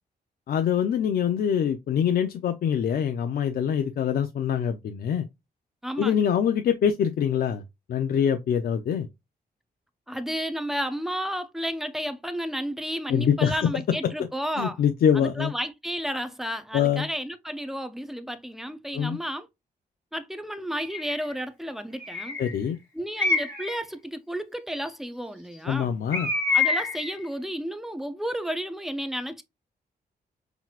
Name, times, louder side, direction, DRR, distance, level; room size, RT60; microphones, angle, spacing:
voice 1, 0.5-5.2 6.0-7.6 7.9-9.1 13.1-14.1 14.6-15.5 16.7-17.1 18.9-19.2 22.4-22.8 25.7-26.3, left 8 dB, 70° left, 0.5 m, -24 dB
voice 2, 5.8-6.3 10.1-14.8 15.1-19.5 20.1-22.4 22.9-26.0 26.5-29.4, equal, ahead, 0.5 m, -32 dB
Bird, 20.8-21.2 22.0-22.5 23.2-23.8 26.1-27.1, left 4 dB, 15° left, 1.7 m, -26 dB
5.9 x 2.9 x 2.4 m
wide cardioid pair, 135°, 17 cm